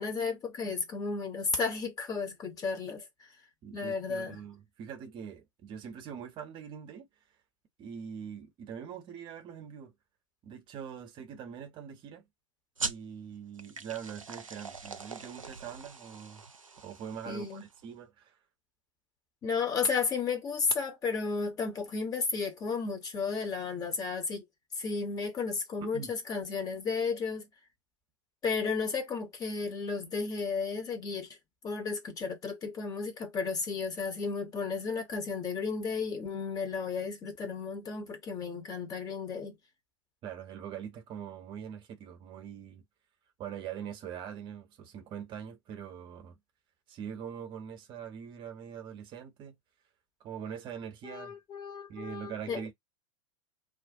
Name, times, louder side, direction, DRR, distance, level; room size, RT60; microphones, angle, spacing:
voice 1, 0.0-3.1 3.7-4.4 17.3-17.6 19.4-24.4 24.8-27.5 28.4-31.4 31.6-39.5 51.0-52.6, left 4 dB, 20° left, 0.7 m, -33 dB
voice 2, 3.6-7.1 7.8-9.9 10.4-12.2 12.8-16.4 16.8-18.3 25.8-26.1 40.2-42.8 43.4-46.4 46.9-49.6 50.2-51.4 51.9-52.7, right 8 dB, 30° right, 0.7 m, -43 dB
sound 1, 12.8-17.8, right 4 dB, 85° right, 0.4 m, -42 dB
2.4 x 2.1 x 2.6 m
figure-of-eight pair, 90°, 17 cm